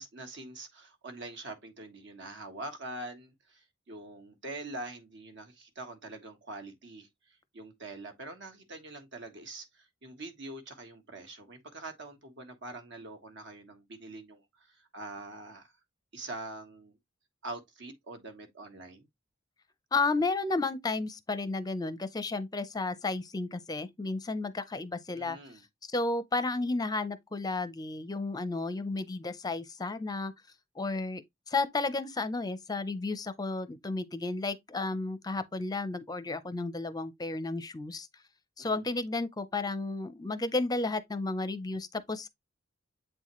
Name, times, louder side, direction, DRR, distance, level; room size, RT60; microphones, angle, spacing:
voice 1, 0.0-7.1 7.5-15.7 16.1-17.0 17.4-19.1 25.1-25.6 38.6-38.8, right 2 dB, 60° right, 1.5 m, -44 dB
voice 2, 19.9-25.4 25.8-30.3 30.8-38.1 38.6-42.3, left 3 dB, 20° left, 0.5 m, -32 dB
7.9 x 4.0 x 3.1 m
head